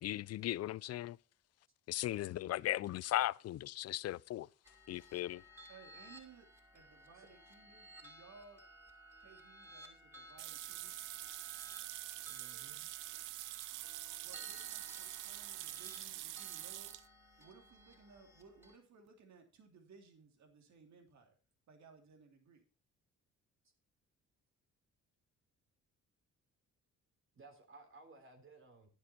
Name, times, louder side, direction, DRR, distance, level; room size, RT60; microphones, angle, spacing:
voice 1, 0.0-1.2 1.9-4.5 4.9-5.4, left 14 dB, 55° left, 0.4 m, -37 dB
sound 1, 4.6-18.8, right 1 dB, 10° right, 4.4 m, -57 dB
voice 2, 5.7-6.5 6.7-8.6 9.2-10.9 14.2-17.1 17.4-21.3 21.7-22.6, right 5 dB, 65° right, 2.9 m, -60 dB
sound 2, 10.4-17.1, right 16 dB, 90° right, 0.7 m, -45 dB
voice 3, 12.2-12.8 27.3-28.9, right 3 dB, 45° right, 3.3 m, -58 dB
11.5 x 9.5 x 4.3 m
cardioid pair, 90°, 30 cm